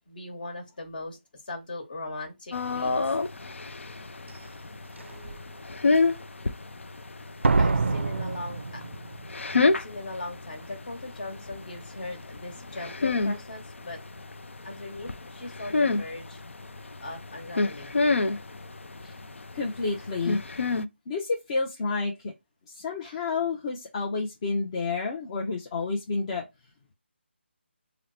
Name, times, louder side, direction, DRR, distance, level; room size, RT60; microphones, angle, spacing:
voice 1, 0.1-1.2 1.4-3.0 7.6-8.8 9.6-14.0 14.6-16.4 17.0-18.0, left 2 dB, 45° left, 1.3 m, -39 dB
sound 1, 2.5-20.9, left 3 dB, 85° left, 0.4 m, -30 dB
Slam, 4.3-4.4 5.0-5.4 7.4-9.3 9.6-9.7, right 3 dB, 85° right, 0.4 m, -26 dB
voice 2, 19.5-20.5 21.1-22.3 22.7-26.4, left 4 dB, 30° left, 0.5 m, -30 dB
2.9 x 2.0 x 4.1 m
figure-of-eight pair, 160°, 7 cm